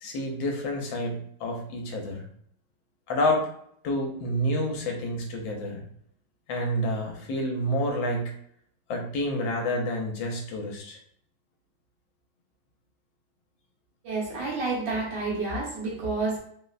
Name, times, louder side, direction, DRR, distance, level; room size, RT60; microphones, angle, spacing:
voice 1, 0.0-2.2 3.1-3.5 3.8-5.8 6.5-8.3 8.9-11.0, left 1 dB, 85° left, 2 dB, 1.4 m, -29 dB
voice 2, 14.0-16.4, right 3 dB, 70° right, -4 dB, 1.6 m, -29 dB
3.7 x 2.1 x 2.3 m, 0.66 s
omnidirectional pair, 2.1 m